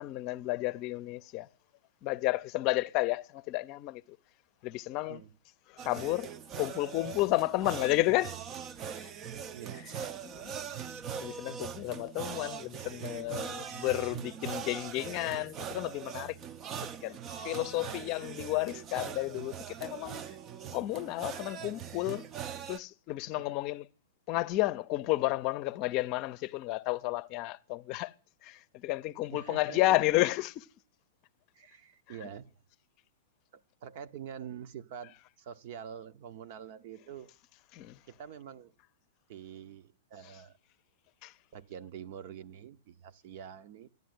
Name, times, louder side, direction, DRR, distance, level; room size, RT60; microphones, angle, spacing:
voice 1, 0.0-1.5 2.0-4.0 4.6-5.2 5.7-6.3 6.6-8.4 9.0-9.1 9.8-9.9 10.2-10.5 11.2-16.4 17.0-20.2 20.7-22.3 22.7-23.8 24.3-28.1 28.4-30.7 37.7-38.0 41.2-41.3, left 18 dB, 45° left, 0.6 m, -32 dB
sound 1, 5.8-22.8, right 8 dB, 30° right, 0.7 m, -41 dB
voice 2, 9.5-10.3 23.4-23.6 29.3-30.0 31.5-32.5 33.5-37.3 38.1-38.7 39.3-40.6 41.5-43.9, right 8 dB, 55° right, 1.0 m, -46 dB
12.5 x 11.0 x 9.5 m
hypercardioid pair, 120°, 0 cm